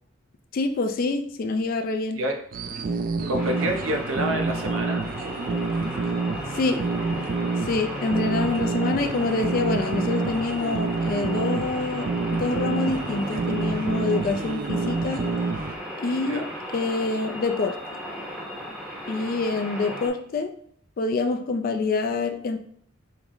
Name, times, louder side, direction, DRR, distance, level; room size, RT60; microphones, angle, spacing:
voice 1, 0.5-2.2 6.5-6.8 7.6-15.2 16.0-16.4 16.7-17.8 19.1-20.5 21.0-22.6, left 3 dB, 45° left, 6 dB, 0.3 m, -26 dB
sound 1, 2.5-15.8, right 3 dB, 45° right, 0.3 m, -28 dB
voice 2, 3.3-5.0 16.3-16.5 19.8-20.1, right 1 dB, 80° right, 3 dB, 0.7 m, -28 dB
sound 2, 3.4-20.1, equal, 5° right, 0.7 m, -36 dB
4.5 x 2.0 x 3.7 m, 0.62 s
head